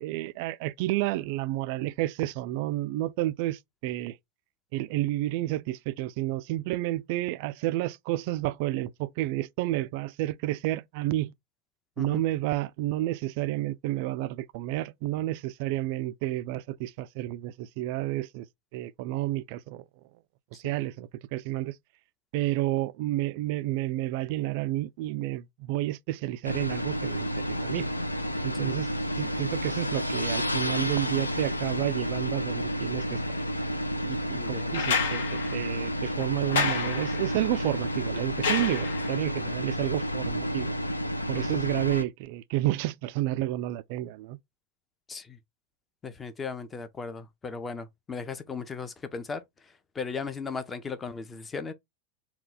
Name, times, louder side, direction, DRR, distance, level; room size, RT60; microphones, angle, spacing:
voice 1, 0.0-4.2 4.7-11.3 12.0-18.5 18.7-19.8 20.5-21.8 22.3-27.9 28.4-28.9 29.2-33.4 34.0-40.7 41.3-44.4, right 16 dB, 45° right, 0.3 m, -30 dB
sound 1, 26.4-42.0, equal, 85° left, 0.4 m, -31 dB
voice 2, 34.3-34.7 41.3-41.6 45.1-45.4 46.0-49.4 49.9-51.7, left 5 dB, 15° left, 0.6 m, -37 dB
sound 2, 34.7-39.4 40.9-41.0, left 5 dB, 60° left, 0.8 m, -31 dB
3.9 x 2.3 x 3.7 m
figure-of-eight pair, 90°, 0 cm